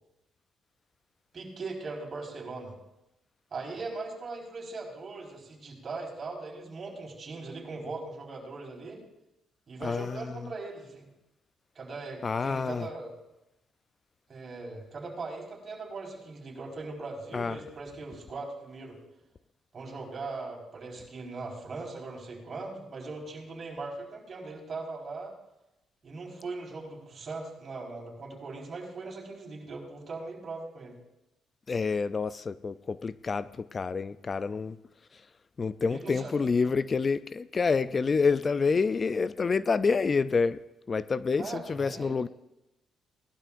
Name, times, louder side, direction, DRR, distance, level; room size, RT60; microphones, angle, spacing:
voice 1, 1.3-2.7 3.5-9.0 9.7-11.1 11.7-13.1 14.3-19.0 19.7-25.3 26.0-31.0 35.9-36.4 36.6-36.7 41.4-42.2, right 3 dB, 45° right, 4.6 m, -40 dB
voice 2, 9.8-10.5 12.2-12.9 17.3-17.6 31.7-34.8 35.6-40.6 40.9-42.3, left 4 dB, 35° left, 0.4 m, -28 dB
19.0 x 12.0 x 2.5 m
cardioid pair, 90°, 0 cm